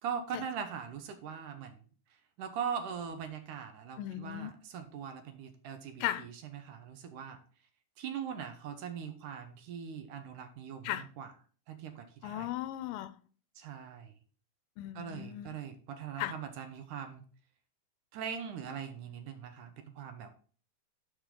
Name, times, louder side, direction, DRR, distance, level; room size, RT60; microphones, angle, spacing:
voice 1, 0.0-1.8 2.4-7.4 8.0-11.3 11.7-12.5 13.6-14.1 15.0-17.2 18.1-20.3, right 7 dB, 70° right, 2.4 m, -41 dB
voice 2, 4.0-4.5 6.0-6.3 10.8-11.1 12.2-13.2 14.8-15.5 16.2-16.3, left 13 dB, 85° left, 2.2 m, -36 dB
10.5 x 5.2 x 3.8 m
omnidirectional pair, 4.0 m